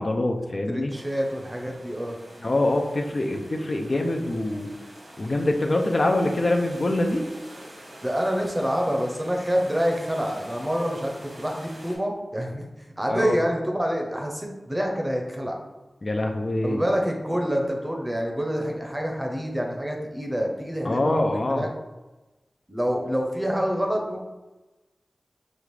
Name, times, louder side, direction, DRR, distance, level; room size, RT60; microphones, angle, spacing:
voice 1, 0.0-0.9 2.4-4.7 5.2-7.2 13.1-13.4 16.0-16.8 20.8-21.7, left 2 dB, 50° left, 3 dB, 0.4 m, -24 dB
voice 2, 0.7-2.2 8.0-12.7 13.0-15.6 16.6-21.7 22.7-24.2, equal, 20° right, 1 dB, 0.7 m, -27 dB
sound 1, 0.9-12.0, right 1 dB, 80° right, 1.2 m, -45 dB
5.1 x 2.4 x 3.1 m, 1.1 s
wide cardioid pair, 70°, 0 cm